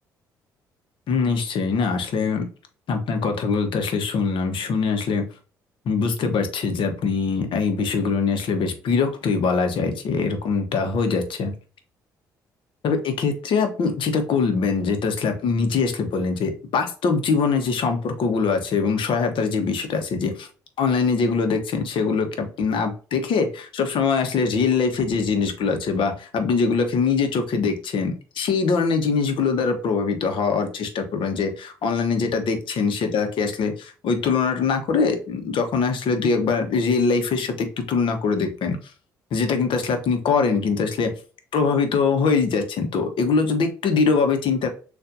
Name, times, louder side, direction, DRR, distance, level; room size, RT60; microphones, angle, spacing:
voice 1, 1.1-2.5 2.9-5.3 5.8-11.5 12.8-20.5 20.8-38.9 39.3-41.1 41.5-44.7, left 5 dB, 60° left, 7 dB, 1.1 m, -23 dB
6.5 x 2.6 x 2.6 m, 0.38 s
hypercardioid pair, 50°, 10 cm